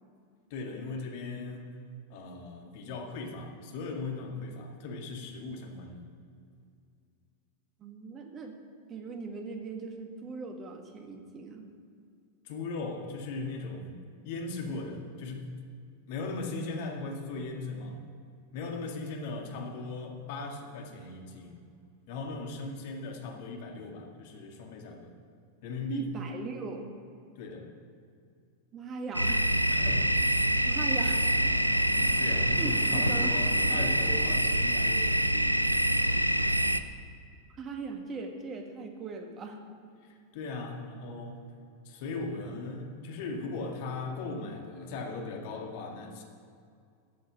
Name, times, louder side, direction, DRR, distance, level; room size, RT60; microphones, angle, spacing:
voice 1, 0.5-1.7 2.1-6.0 12.4-15.5 16.1-18.0 18.5-21.6 22.1-25.1 25.6-26.1 27.4-27.7 29.7-30.2 32.2-36.2 40.0-41.5 41.9-46.2, left 3 dB, 50° left, 2 dB, 2.0 m, -38 dB
voice 2, 7.8-8.6 8.9-11.7 25.9-26.9 28.7-29.6 30.7-31.3 32.6-33.4 37.5-39.6, right 4 dB, 25° right, 4 dB, 1.7 m, -39 dB
sound 1, 29.1-36.8, right 1 dB, 90° right, 0.4 m, -26 dB
sound 2, 29.3-34.4, left 1 dB, 10° left, 1.9 m, -44 dB
14.0 x 7.7 x 6.0 m, 2.3 s
figure-of-eight pair, 90°, 0 cm